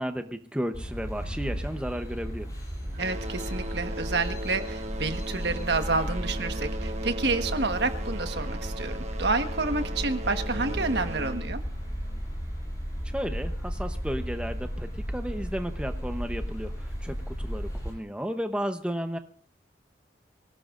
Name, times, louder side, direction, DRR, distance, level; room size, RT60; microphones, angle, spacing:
voice 1, 0.0-2.5 13.0-19.2, equal, 5° right, 6 dB, 0.8 m, -33 dB
sound 1, 0.7-17.9, equal, 20° left, 7.2 m, -34 dB
sound 2, 1.1-2.5 2.8-13.1 14.0-14.1 14.7-14.8 15.5-15.6, right 1 dB, 35° right, 1.2 m, -39 dB
voice 2, 3.0-11.6, right 3 dB, 65° right, 7 dB, 1.4 m, -29 dB
24.5 x 17.5 x 2.5 m, 0.44 s
head